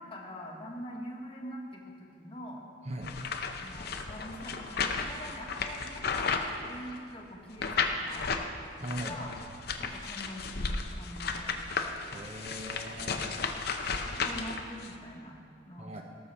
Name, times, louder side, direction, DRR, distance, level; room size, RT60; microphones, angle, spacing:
voice 1, 0.0-2.6 3.6-8.3 9.0-9.4 9.8-11.6 13.1-13.5 13.9-15.3 15.7-16.0, equal, 25° left, 0 dB, 1.3 m, -44 dB
sound 1, 3.0-7.1 7.6-8.5 8.8-14.9, left 5 dB, 50° left, 0.7 m, -34 dB
voice 2, 8.8-9.2 12.1-13.3 15.8-16.0, right 1 dB, 35° right, 2 dB, 0.8 m, -39 dB
18.5 x 6.7 x 4.4 m, 2.4 s
head